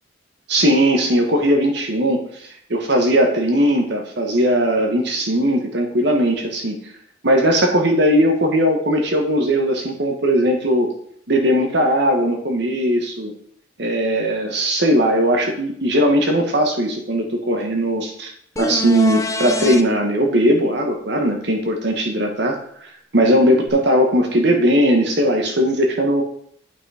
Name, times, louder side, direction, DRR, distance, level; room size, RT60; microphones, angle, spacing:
voice 1, 0.5-6.8 7.2-10.9 11.3-13.3 13.8-18.3 18.6-26.2, equal, 60° right, 2 dB, 1.4 m, -18 dB
sound 1, 18.6-19.8 23.7-23.8, left 2 dB, 15° left, 0.7 m, -24 dB
8.7 x 6.1 x 4.9 m, 0.65 s
head